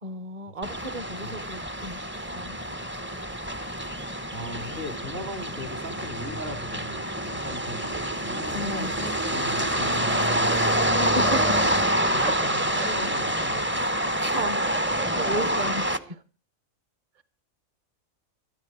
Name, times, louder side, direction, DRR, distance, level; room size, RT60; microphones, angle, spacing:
voice 1, 0.0-2.6 8.5-8.9 11.0-11.7 12.2-12.3 12.7-13.1 14.1-16.2 17.2-17.3, right 1 dB, 30° right, 0.9 m, -34 dB
sound 1, 0.6-16.0, right 1 dB, 10° right, 0.6 m, -27 dB
sound 2, 2.1-3.2 3.5-4.8 5.1-8.1 9.8-9.9 10.2-16.1, right 2 dB, 90° right, 8.3 m, -55 dB
voice 2, 4.3-10.9 12.1-13.9, left 1 dB, 60° right, 4.4 m, -39 dB
18.0 x 13.0 x 4.8 m
omnidirectional pair, 1.4 m